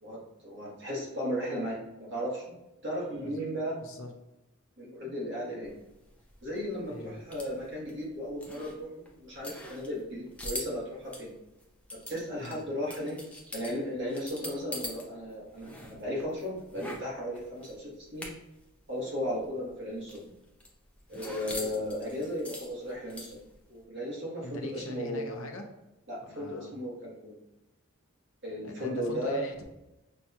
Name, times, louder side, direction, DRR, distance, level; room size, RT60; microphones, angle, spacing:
voice 1, 0.0-2.6 2.8-3.7 4.8-5.7 6.4-11.3 12.1-13.2 13.5-18.3 18.9-20.2 21.1-23.4 23.7-25.4 26.1-27.4 28.4-29.4, equal, 55° right, -5 dB, 1.2 m, -35 dB
voice 2, 3.8-4.1 6.9-7.2 12.4-12.6 24.4-25.7 26.2-26.7 28.6-29.6, left 2 dB, 65° left, 2 dB, 0.7 m, -42 dB
sound 1, 5.6-15.0 15.3-18.7 18.9-19.0 19.3-23.6, left 1 dB, 5° left, 0.5 m, -43 dB
5.8 x 2.3 x 2.7 m, 0.95 s
head